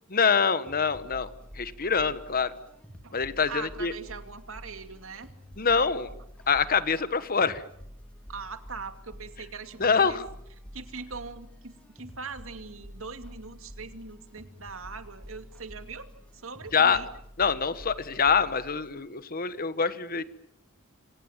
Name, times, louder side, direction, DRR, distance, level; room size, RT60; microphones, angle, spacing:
voice 1, 0.1-2.5 3.1-3.9 5.6-6.1 6.5-7.6 9.8-10.2 16.7-17.0 17.4-20.2, left 5 dB, 45° left, 14 dB, 1.3 m, -25 dB
sound 1, 0.7-18.9, equal, 5° left, 3.5 m, -48 dB
voice 2, 3.5-5.3 8.3-10.2 10.7-17.1, right 4 dB, 70° right, 8 dB, 2.5 m, -41 dB
27.5 x 26.5 x 7.4 m, 0.72 s
head